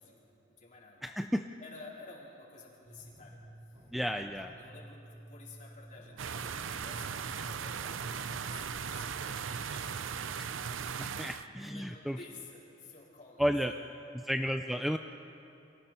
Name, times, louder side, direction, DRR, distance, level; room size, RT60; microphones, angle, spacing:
voice 1, 0.0-1.1 1.6-3.4 3.7-3.9 4.1-10.2 11.6-13.9, left 3 dB, 40° left, -4 dB, 4.3 m, -53 dB
voice 2, 1.0-1.5 3.9-4.5 10.4-10.5 11.0-12.2 13.4-13.7 14.3-15.0, equal, ahead, 6 dB, 0.4 m, -32 dB
sound 1, 2.8-8.6, right 1 dB, 30° right, 3.4 m, -53 dB
sound 2, 6.2-11.5, right 6 dB, 80° right, 0.6 m, -38 dB
30.0 x 24.0 x 4.4 m, 2.8 s
head